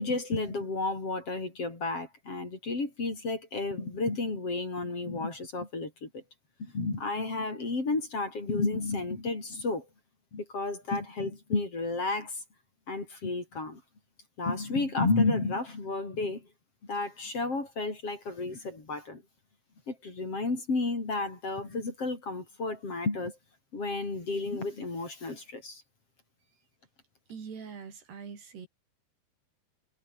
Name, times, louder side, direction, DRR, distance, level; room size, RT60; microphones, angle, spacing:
voice 1, 0.0-6.2 6.6-9.8 10.3-12.4 12.9-13.8 14.4-16.4 16.9-19.2 19.9-23.4 23.7-25.8, left 3 dB, 35° left, 5.9 m, -32 dB
voice 2, 27.3-28.7, right 6 dB, 70° right, 6.8 m, -43 dB
omnidirectional pair, 4.9 m